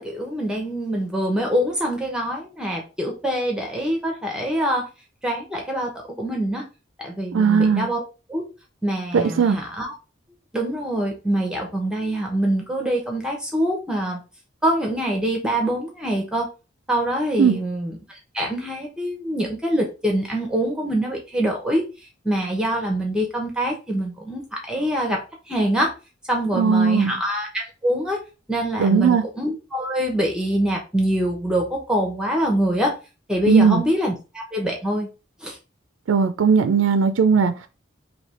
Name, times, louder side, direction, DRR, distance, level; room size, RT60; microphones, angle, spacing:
voice 1, 0.0-4.9 5.2-5.9 6.2-6.7 7.0-8.0 8.3-8.4 8.8-10.0 10.5-14.2 14.6-16.5 16.9-21.8 22.2-25.2 25.5-25.9 26.3-28.2 28.5-33.0 33.3-35.1 35.4-35.6, right 1 dB, 5° right, 0.7 m, -24 dB
voice 2, 7.3-7.9 9.1-9.6 17.4-17.6 26.5-27.2 28.8-29.2 33.5-33.8 36.1-37.7, right 5 dB, 85° right, 0.4 m, -18 dB
3.2 x 2.7 x 4.2 m
head